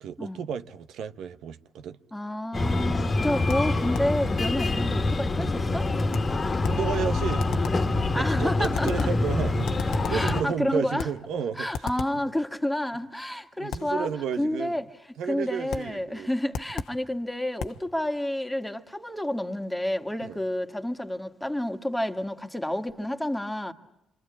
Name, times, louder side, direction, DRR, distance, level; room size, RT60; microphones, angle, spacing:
voice 1, 0.0-2.0 6.6-7.5 8.1-11.7 13.6-14.8 15.2-16.3 20.2-20.4, right 7 dB, 80° right, 1.0 m, -32 dB
voice 2, 2.1-5.9 8.1-9.1 10.1-11.1 11.5-14.1 14.4-14.9 15.2-23.7, left 1 dB, 5° left, 1.9 m, -30 dB
Breathing, 2.5-10.4, left 2 dB, 35° left, 1.7 m, -26 dB
sound 1, 3.5-4.2 6.1-6.9 7.4-7.9 8.6-9.3 9.7-10.5 11.0-11.3 11.7-12.3 13.7-14.0 15.7-16.0 16.5-17.0 17.6-17.9, left 6 dB, 75° left, 1.1 m, -35 dB
26.5 x 25.5 x 8.7 m
cardioid pair, 90°, 0 cm